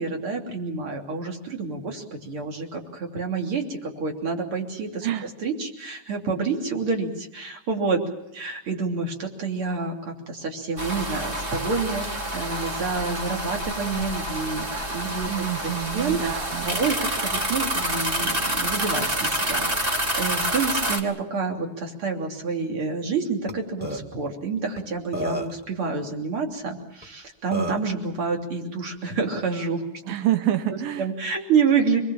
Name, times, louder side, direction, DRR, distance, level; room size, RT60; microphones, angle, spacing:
voice 1, 0.0-8.0 8.3-16.2 16.6-29.8 31.0-32.0, right 4 dB, 40° right, 2 dB, 3.8 m, -28 dB
sound 1, 10.8-21.0, right 1 dB, 20° right, 1.9 m, -28 dB
voice 2, 15.3-16.8 30.1-31.1, right 12 dB, 85° right, 9 dB, 2.7 m, -27 dB
Burping eructation, 23.5-23.6 23.8-24.0 24.8-24.9 25.1-25.6 27.0-27.1 27.5-27.9, equal, 5° right, 1.6 m, -29 dB
27.0 x 21.0 x 7.3 m, 0.85 s
omnidirectional pair, 3.9 m